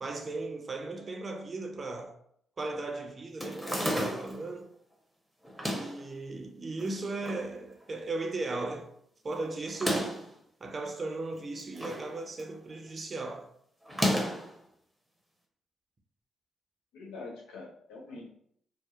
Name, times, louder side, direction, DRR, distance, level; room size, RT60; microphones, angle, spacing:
voice 1, 0.0-2.2 2.6-4.7 5.7-8.9 9.2-10.2 10.6-13.5, right 3 dB, 40° right, 0.5 m, -37 dB
sound 1, 3.4-4.4 5.4-6.0 6.8-7.5 7.8-7.9 8.1-8.2 9.6-10.3 11.3-12.1 12.4-12.7 13.9-14.5, equal, ahead, 0.7 m, -32 dB
voice 2, 16.9-18.3, left 3 dB, 80° left, 0.5 m, -44 dB
2.7 x 2.0 x 2.3 m
hypercardioid pair, 45°, 0 cm